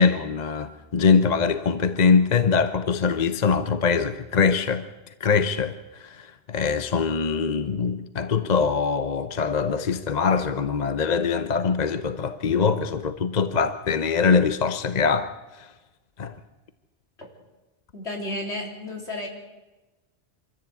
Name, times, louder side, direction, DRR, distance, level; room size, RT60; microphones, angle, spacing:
voice 1, 0.0-4.9 5.2-15.3 15.6-15.7 16.2-16.3, left 5 dB, 40° left, 0.9 m, -23 dB
voice 2, 17.9-19.3, left 1 dB, 70° left, 4.0 m, -32 dB
25.0 x 14.0 x 8.4 m
omnidirectional pair, 1.2 m